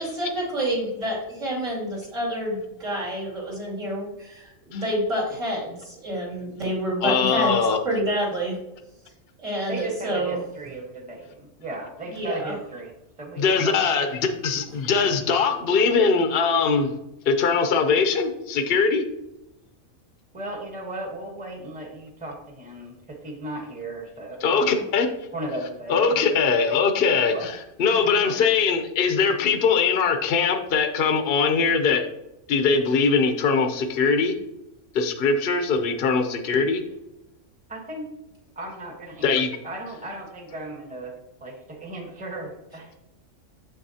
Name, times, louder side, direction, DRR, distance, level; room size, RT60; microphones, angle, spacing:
voice 1, 0.0-7.6 7.8-8.6 9.4-10.4 12.1-12.5, equal, 65° right, -4 dB, 2.7 m, -28 dB
voice 2, 7.0-7.8 13.4-16.9 17.3-19.0 24.4-25.1 25.9-27.5 27.8-32.0 32.5-34.3 34.9-36.8 39.2-39.5, left 5 dB, 55° left, 5 dB, 0.8 m, -21 dB
voice 3, 9.7-12.9 13.2-14.1 20.3-24.8 25.3-26.7 27.3-27.5 37.7-38.1 38.6-39.4 39.6-41.1 41.4-42.9, right 2 dB, 5° right, 1 dB, 0.9 m, -36 dB
7.2 x 6.1 x 2.8 m, 0.89 s
omnidirectional pair, 1.4 m